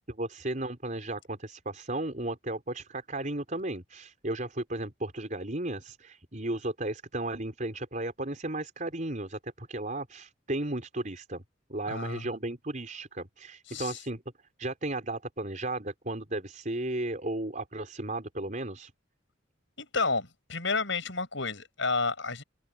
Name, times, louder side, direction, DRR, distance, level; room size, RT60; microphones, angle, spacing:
voice 1, 0.2-11.4 11.7-14.2 14.6-18.9, right 2 dB, 40° right, 4.7 m, -34 dB
voice 2, 11.9-12.3 13.7-14.0 19.8-22.4, left 4 dB, 65° left, 7.4 m, -31 dB
head